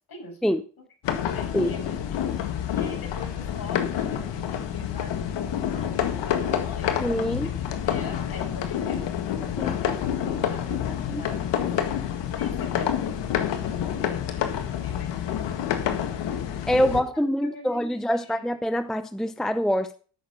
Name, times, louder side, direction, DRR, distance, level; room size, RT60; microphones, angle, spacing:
voice 1, 0.1-0.4 0.8-2.0 2.7-9.2 9.6-11.8 12.1-15.2 16.8-18.6, left 2 dB, 55° left, 6.7 m, -43 dB
sound 1, 1.0-17.0, left 9 dB, 75° left, 1.8 m, -28 dB
voice 2, 7.0-7.5 9.6-9.7 11.1-11.2 16.7-20.0, equal, ahead, 0.7 m, -25 dB
14.5 x 6.5 x 5.2 m
cardioid pair, 80°, 43 cm